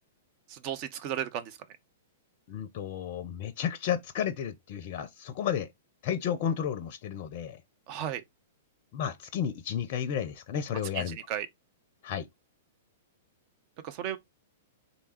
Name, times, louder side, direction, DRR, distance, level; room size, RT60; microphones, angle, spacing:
voice 1, 0.5-1.6 7.9-8.2 10.9-11.5 13.8-14.2, right 10 dB, 40° right, 0.6 m, -34 dB
voice 2, 2.5-5.7 6.0-7.6 8.9-11.2 12.0-12.3, left 9 dB, 45° left, 0.5 m, -32 dB
3.4 x 2.8 x 4.2 m
figure-of-eight pair, 105°, 0 cm